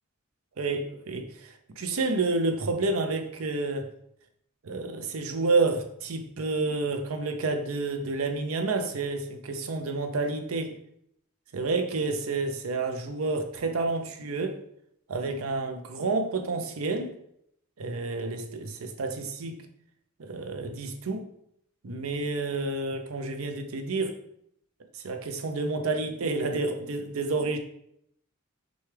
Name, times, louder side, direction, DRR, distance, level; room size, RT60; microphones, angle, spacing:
voice 1, 0.6-3.9 4.6-10.7 11.5-14.6 15.1-17.1 17.8-19.6 20.2-21.3 21.8-24.2 24.9-27.6, right 3 dB, 80° right, 6 dB, 0.6 m, -29 dB
6.1 x 2.3 x 3.3 m, 0.72 s
head